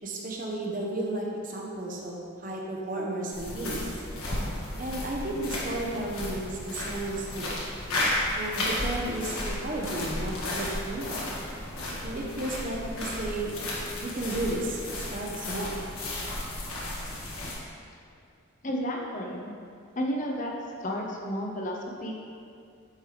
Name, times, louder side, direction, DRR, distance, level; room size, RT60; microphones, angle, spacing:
voice 1, 0.0-3.9 4.8-7.3 8.4-11.3 12.0-13.5 14.0-14.8 15.1-15.8, right 1 dB, 40° right, -2 dB, 1.0 m, -33 dB
sound 1, 3.3-17.5, left 1 dB, 80° left, 1.6 m, -33 dB
voice 2, 18.6-19.5 19.9-20.5 20.8-22.1, equal, 35° left, -1 dB, 0.8 m, -32 dB
9.4 x 5.4 x 3.4 m, 2.4 s
head